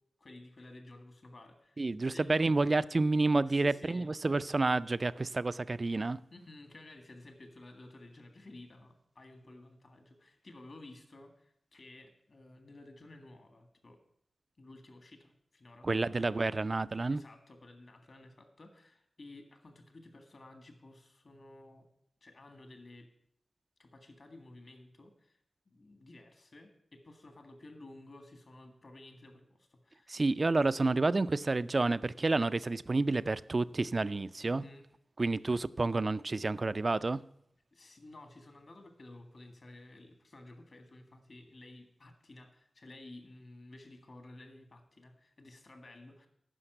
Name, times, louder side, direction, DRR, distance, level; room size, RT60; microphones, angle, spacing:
voice 1, 0.2-2.6 3.5-4.1 6.3-14.0 14.6-16.7 17.1-21.9 22.2-23.1 23.8-25.4 25.7-30.2 34.4-34.9 37.7-46.3, left 2 dB, 55° left, 1.8 m, -54 dB
voice 2, 1.8-6.2 15.8-17.2 30.1-34.6 35.2-37.2, right 3 dB, 45° right, 0.4 m, -29 dB
9.9 x 5.8 x 7.9 m
cardioid pair, 55°, 0 cm